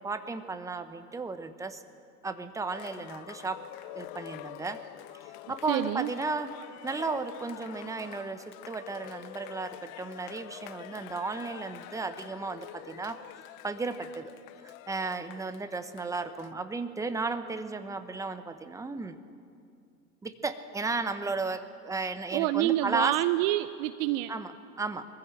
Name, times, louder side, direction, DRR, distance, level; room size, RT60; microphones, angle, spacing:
voice 1, 0.0-1.8 2.2-3.6 3.9-4.8 5.5-6.5 6.8-13.2 13.6-14.3 14.6-19.2 20.2-23.1 24.3-25.1, right 3 dB, 5° right, 9 dB, 0.9 m, -34 dB
Cheering, 2.7-16.5, left 17 dB, 35° left, 0.4 m, -46 dB
voice 2, 5.7-6.1 22.3-24.3, right 16 dB, 40° right, 12 dB, 0.6 m, -27 dB
22.5 x 15.0 x 7.7 m, 2.4 s
hypercardioid pair, 100°, 46 cm